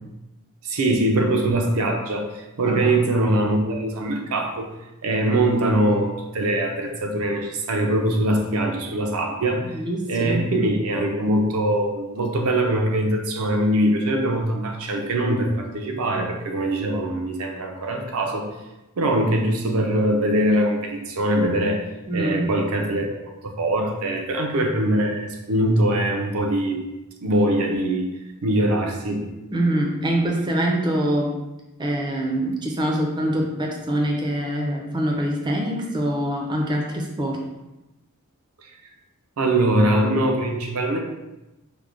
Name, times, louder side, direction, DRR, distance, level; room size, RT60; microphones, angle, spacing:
voice 1, 0.6-4.7 5.0-9.7 10.1-18.5 19.0-21.8 22.1-26.8 27.2-28.1 28.4-29.3 39.4-41.0, right 1 dB, 70° right, 2 dB, 0.5 m, -22 dB
voice 2, 9.6-10.5 22.1-22.5 29.5-31.3 31.8-37.4, right 1 dB, 20° right, 0 dB, 0.5 m, -24 dB
4.6 x 2.1 x 2.5 m, 1.0 s
head